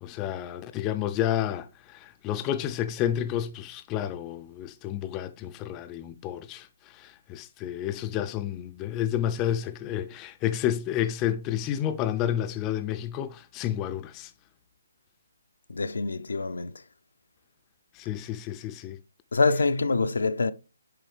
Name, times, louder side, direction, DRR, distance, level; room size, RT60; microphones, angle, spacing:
voice 1, 0.0-14.3 17.9-19.0, left 11 dB, 20° left, 0.4 m, -30 dB
voice 2, 15.7-16.7 19.3-20.5, left 3 dB, 75° left, 0.5 m, -25 dB
7.6 x 4.8 x 3.3 m
figure-of-eight pair, 150°, 0 cm